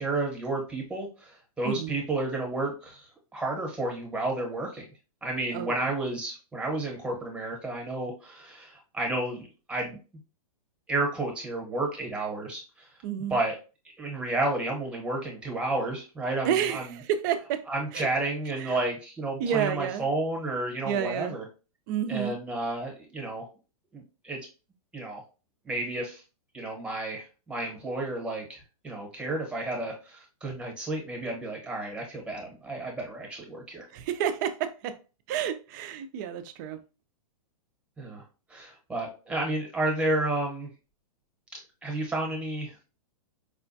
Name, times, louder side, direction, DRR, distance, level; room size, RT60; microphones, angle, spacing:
voice 1, 0.0-4.8 5.2-10.0 10.9-12.9 13.3-13.6 14.0-17.0 17.7-21.4 22.1-23.5 23.9-24.4 24.9-25.2 25.6-26.2 26.5-33.9 38.0-38.2 38.5-40.7 41.5-42.8, right 2 dB, 5° right, 0.9 m, -31 dB
voice 2, 13.0-13.4 16.4-17.7 17.9-18.1 18.6-18.8 19.4-20.0 20.8-21.4 21.9-22.3 33.9-35.0 35.3-36.8, right 9 dB, 30° right, 0.4 m, -30 dB
4.7 x 2.2 x 2.6 m
hypercardioid pair, 150°, 19 cm